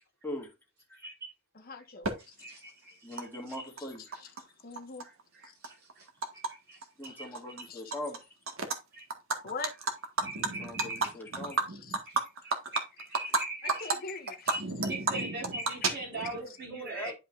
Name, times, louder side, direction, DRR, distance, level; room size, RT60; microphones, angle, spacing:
voice 1, 0.2-0.5 3.0-4.0 7.0-8.4 10.4-11.6 16.1-17.1, left 1 dB, 10° left, 2.1 m, -41 dB
voice 2, 0.9-1.3 2.2-3.6 5.0-6.1 6.3-7.5 8.9-9.0 10.2-11.1 12.1-13.9 14.2-17.1, right 2 dB, 55° right, 4.8 m, -42 dB
voice 3, 1.5-2.3 3.8-3.9 4.2-4.3 4.6-5.1 5.4-5.5 6.3-6.4 7.0-7.4 7.7-7.9 9.4-9.7 11.7-11.9 13.6-14.5 15.6-16.3, left 4 dB, 50° left, 1.3 m, -43 dB
Animal, 2.0-2.1 3.2-3.3 3.5-4.4 4.8-6.5 6.8-7.1 7.3-8.2 8.5-8.8 9.1-13.4 13.7-13.9 14.3-16.4, right 3 dB, 85° right, 1.6 m, -32 dB
11.0 x 5.3 x 2.5 m
head